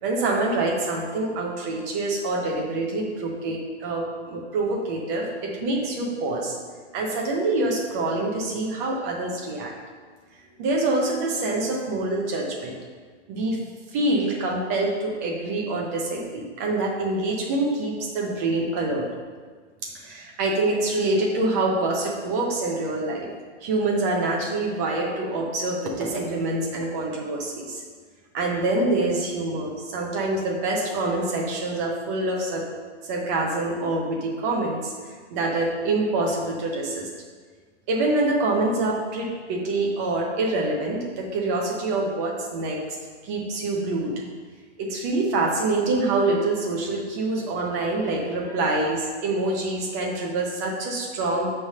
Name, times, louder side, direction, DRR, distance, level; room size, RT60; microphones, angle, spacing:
voice 1, 0.0-6.6 6.9-9.7 10.6-12.7 13.3-13.6 13.9-19.1 19.9-23.3 23.6-27.8 28.3-32.6 33.1-34.9 35.3-37.1 37.9-43.0 43.2-44.1 44.8-51.5, right 2 dB, 15° right, -1 dB, 0.4 m, -26 dB
6.0 x 3.2 x 5.4 m, 1.5 s
hypercardioid pair, 160°, 35 cm